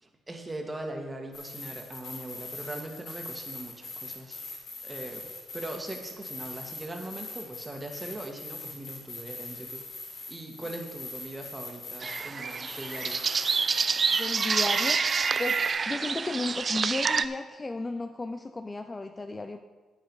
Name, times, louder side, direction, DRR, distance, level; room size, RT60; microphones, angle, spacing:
voice 1, 0.0-4.4 4.8-5.2 5.5-9.8 10.3-13.2, right 1 dB, 15° right, 2 dB, 1.7 m, -40 dB
sound 1, 1.3-15.7, left 3 dB, 60° left, 2.9 m, -42 dB
sound 2, 12.0-17.3, right 5 dB, 40° right, 0.4 m, -27 dB
voice 2, 14.1-19.6, left 3 dB, 20° left, 8 dB, 0.5 m, -34 dB
9.4 x 9.2 x 4.7 m, 1.4 s
cardioid pair, 90°, 0 cm